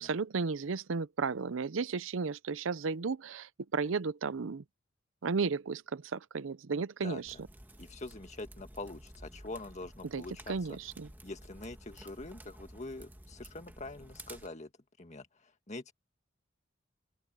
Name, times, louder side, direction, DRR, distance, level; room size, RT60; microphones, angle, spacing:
voice 1, 0.0-4.6 5.2-7.4 10.0-11.1, right 4 dB, 80° right, 0.6 m, -34 dB
sound 1, 7.3-14.5, right 1 dB, 10° right, 1.5 m, -52 dB
voice 2, 7.8-10.8 11.2-14.7 15.0-15.9, left 2 dB, 35° left, 1.8 m, -44 dB
open air
head